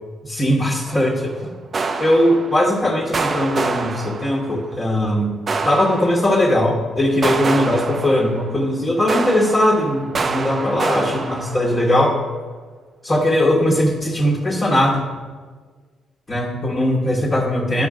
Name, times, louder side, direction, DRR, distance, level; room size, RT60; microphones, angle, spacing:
voice 1, 0.2-1.5 2.0-5.4 5.6-12.1 13.0-15.0 16.3-17.9, left 1 dB, 30° left, -4 dB, 1.4 m, -19 dB
sound 1, 0.9-1.3 1.7-2.8 3.1-4.7 5.5-6.6 7.2-8.7 9.1-12.0, right 4 dB, 40° right, 0.6 m, -27 dB
10.5 x 4.8 x 4.9 m, 1.5 s
cardioid pair, 90°, 0 cm